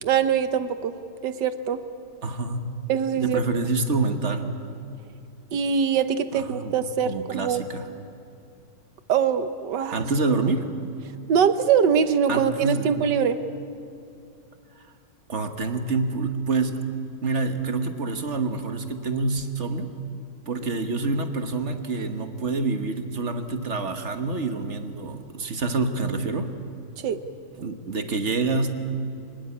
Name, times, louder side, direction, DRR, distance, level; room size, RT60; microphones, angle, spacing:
voice 1, 0.0-0.9 1.2-1.8 2.9-3.4 5.5-7.6 9.1-10.1 11.3-13.4 27.0-27.2, right 7 dB, 60° right, 11 dB, 1.5 m, -23 dB
voice 2, 2.2-2.7 3.1-4.5 6.3-6.7 7.0-7.9 9.9-10.7 12.3-13.0 14.8-14.9 15.3-16.8 17.2-19.9 20.5-26.5 27.6-28.7, right 3 dB, 40° right, 7 dB, 1.3 m, -27 dB
24.5 x 20.0 x 8.6 m, 2.6 s
omnidirectional pair, 2.3 m